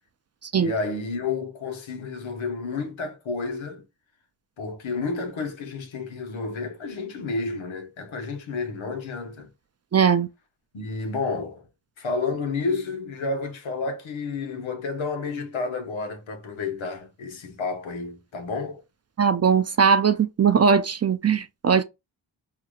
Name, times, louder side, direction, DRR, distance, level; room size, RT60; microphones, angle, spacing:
voice 1, 0.5-3.8 4.6-9.5 10.7-11.7 12.0-18.8, left 4 dB, 75° left, 1.2 m, -30 dB
voice 2, 9.9-10.3 19.2-21.8, right 6 dB, 35° right, 0.4 m, -20 dB
4.7 x 2.8 x 2.3 m
cardioid pair, 65°, 48 cm